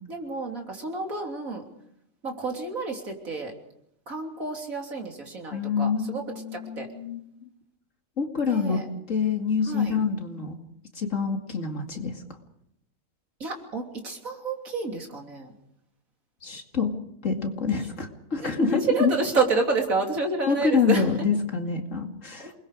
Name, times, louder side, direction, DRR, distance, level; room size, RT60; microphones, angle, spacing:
voice 1, 0.1-1.6 2.2-3.5 4.1-6.9 8.4-8.9 9.7-10.0 13.4-15.5 18.4-21.1 22.4-22.5, right 3 dB, 70° right, 2 dB, 3.7 m, -29 dB
voice 2, 5.5-7.2 8.2-8.8 9.1-10.5 11.0-12.1 16.4-16.9 17.2-19.1 20.5-22.5, left 5 dB, 60° left, 4 dB, 2.7 m, -26 dB
28.0 x 21.0 x 5.0 m, 0.75 s
omnidirectional pair, 1.5 m